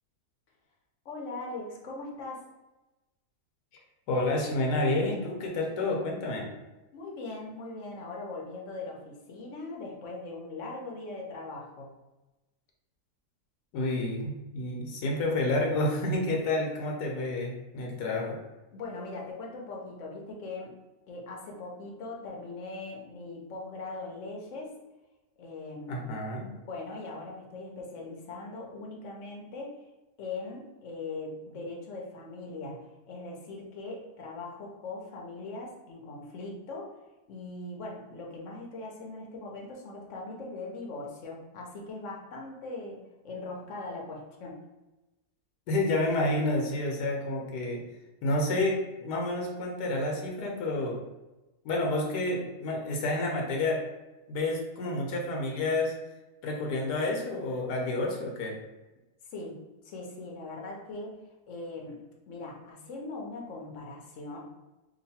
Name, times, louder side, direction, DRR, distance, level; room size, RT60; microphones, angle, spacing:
voice 1, 1.0-2.4 6.9-12.0 18.7-20.7 21.1-24.7 25.4-29.8 30.2-36.9 37.3-44.6 59.3-59.6 59.8-61.2 61.5-62.0 62.3-64.4, left 3 dB, 60° left, -1 dB, 1.0 m, -40 dB
voice 2, 4.1-6.5 13.7-18.4 25.9-26.5 45.7-47.8 48.2-51.0 51.6-53.8 54.3-55.9 56.4-58.6, left 2 dB, 85° left, 0 dB, 1.3 m, -29 dB
3.0 x 2.6 x 4.1 m, 1.0 s
omnidirectional pair, 1.7 m